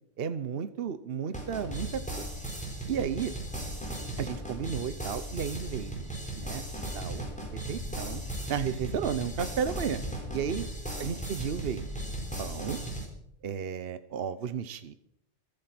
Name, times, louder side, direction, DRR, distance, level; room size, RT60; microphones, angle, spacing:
voice 1, 0.2-2.3 2.9-3.3 4.2-6.1 6.3-6.6 6.9-7.2 7.5-8.2 8.5-10.0 10.3-10.7 11.0-11.8 12.4-12.8 13.4-14.9, right 7 dB, 65° right, 13 dB, 1.0 m, -33 dB
sound 1, 1.3-13.1, right 2 dB, 5° left, 4.1 m, -38 dB
Wind, 1.5-12.8, left 1 dB, 30° left, 4.0 m, -41 dB
25.0 x 8.8 x 6.0 m, 0.75 s
omnidirectional pair, 1.1 m